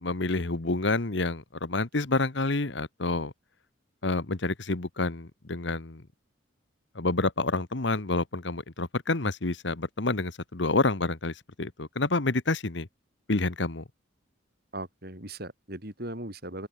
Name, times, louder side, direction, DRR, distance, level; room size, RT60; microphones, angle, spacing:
voice 1, 0.0-3.3 4.0-6.0 6.9-12.9 13.3-13.8, left 2 dB, 65° left, 1.3 m, -28 dB
voice 2, 14.7-16.7, right 1 dB, 50° right, 7.9 m, -38 dB
open air
head